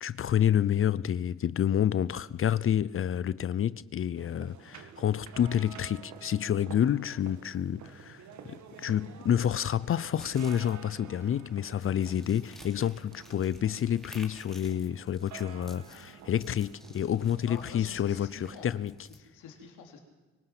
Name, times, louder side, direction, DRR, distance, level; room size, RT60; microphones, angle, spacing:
voice 1, 0.0-19.1, left 10 dB, 45° left, 0.6 m, -29 dB
sound 1, 4.2-18.8, right 7 dB, 70° right, 1.8 m, -50 dB
sound 2, 10.2-19.2, equal, ahead, 3.0 m, -54 dB
voice 2, 17.4-18.7 19.3-20.0, left 6 dB, 85° left, 3.3 m, -47 dB
24.5 x 18.0 x 6.0 m
cardioid pair, 90°, 30 cm